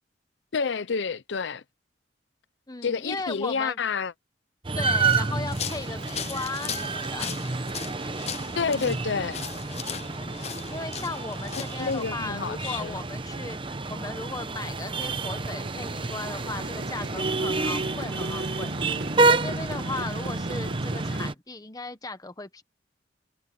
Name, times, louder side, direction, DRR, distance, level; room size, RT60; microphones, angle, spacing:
voice 1, 0.5-1.6 2.8-4.1 8.6-9.4 11.8-13.0, left 5 dB, 80° left, 0.6 m, -29 dB
voice 2, 2.7-3.8 4.8-7.3 10.7-22.6, left 3 dB, 20° left, 1.2 m, -37 dB
sound 1, 4.6-21.3, right 3 dB, 30° right, 0.8 m, -29 dB
sound 2, 5.0-12.0, left 8 dB, 35° left, 0.8 m, -38 dB
Motorcycle, 12.0-21.3, right 1 dB, 65° right, 1.7 m, -38 dB
head